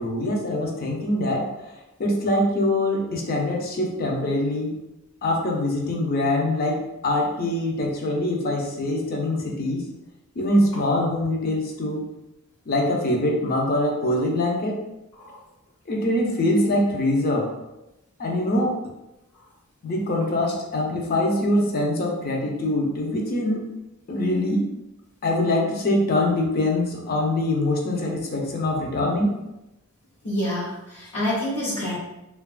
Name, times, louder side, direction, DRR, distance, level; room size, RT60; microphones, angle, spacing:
voice 1, 0.0-1.7 2.0-4.8 5.2-9.9 10.4-12.1 12.7-14.8 15.9-17.5 18.2-18.7 19.8-23.6 24.1-24.6 25.2-29.3, left 1 dB, 45° left, 0 dB, 0.5 m, -23 dB
voice 2, 30.2-32.0, left 1 dB, 75° left, -9 dB, 0.8 m, -27 dB
2.7 x 2.3 x 2.3 m, 0.93 s
head